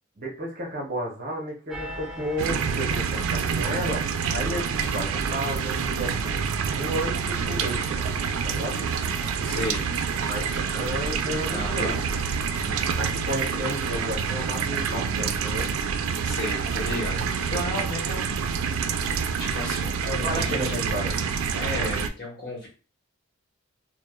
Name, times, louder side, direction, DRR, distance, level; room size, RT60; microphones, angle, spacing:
voice 1, 0.2-6.5 6.7-7.9 8.4-8.9 10.2-12.0 13.0-15.7 20.2-21.2, equal, 40° right, -1 dB, 0.7 m, -32 dB
sound 1, 1.7-17.7, equal, ahead, 0.4 m, -43 dB
sound 2, 2.4-22.1, right 6 dB, 90° right, 0.3 m, -27 dB
voice 2, 9.4-9.9 10.5-10.8 11.5-12.0 12.6-13.0 16.2-19.1 19.4-20.9 21.5-22.7, left 1 dB, 45° left, -2 dB, 1.0 m, -34 dB
3.1 x 2.0 x 2.3 m, 0.36 s
head